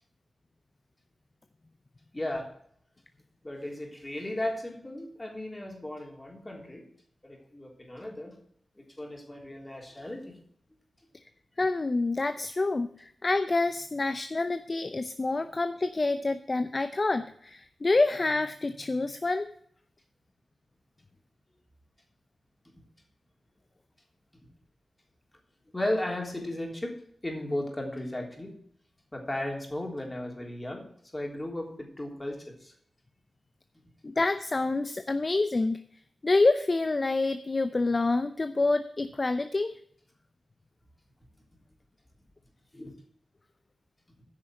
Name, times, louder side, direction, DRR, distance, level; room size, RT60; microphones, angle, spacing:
voice 1, 2.1-2.5 3.4-6.9 7.2-8.4 8.8-10.4 25.7-28.5 29.1-30.8 31.1-32.7 42.7-42.9, left 1 dB, 20° left, 1 dB, 3.5 m, -35 dB
voice 2, 11.6-19.5 34.0-35.8 36.2-39.7, left 3 dB, 40° left, 10 dB, 0.6 m, -27 dB
9.7 x 6.2 x 7.6 m, 0.64 s
cardioid pair, 55°, 0 cm